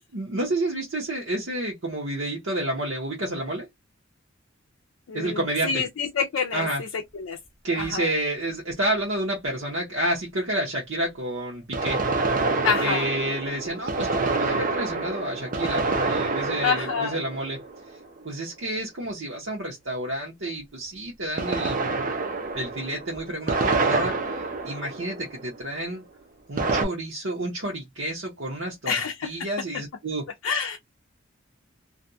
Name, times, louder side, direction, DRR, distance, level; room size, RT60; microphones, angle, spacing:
voice 1, 0.1-3.7 5.1-5.8 6.5-6.8 7.6-12.0 12.8-17.6 18.2-21.8 22.5-26.0 26.5-29.0 29.2-30.3, right 1 dB, 70° right, 0.9 m, -29 dB
voice 2, 5.1-6.9 7.1-7.4 7.8-8.1 12.6-13.1 16.6-17.2 28.9-29.3 30.4-30.8, left 5 dB, 85° left, 0.5 m, -27 dB
sound 1, 7.8-7.9 11.7-18.2 21.4-25.6 26.6-26.8, right 3 dB, 40° right, 0.5 m, -27 dB
2.5 x 2.2 x 2.6 m
head